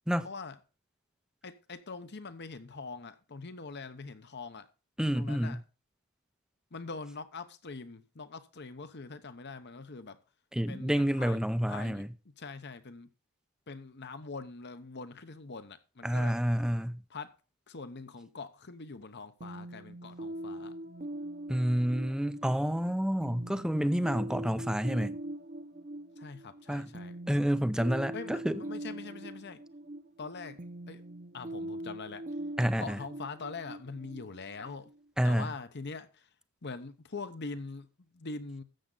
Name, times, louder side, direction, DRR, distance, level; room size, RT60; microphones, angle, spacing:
voice 1, 0.2-0.6 1.4-4.7 5.1-5.6 6.7-10.2 10.7-13.1 13.7-16.4 17.1-17.3 17.7-20.7 26.2-27.2 28.1-29.6 30.2-30.6 30.9-31.0 31.3-32.3 32.8-34.9 35.2-36.3 36.6-38.6, left 4 dB, 50° left, 1.0 m, -43 dB
voice 2, 5.0-5.6 10.5-12.1 16.0-17.0 21.5-25.1 26.7-26.9 27.3-28.6 32.6-33.0 35.2-35.5, equal, 5° right, 0.5 m, -29 dB
sound 1, 19.4-35.0, right 1 dB, 35° right, 0.8 m, -42 dB
13.0 x 7.8 x 4.0 m
head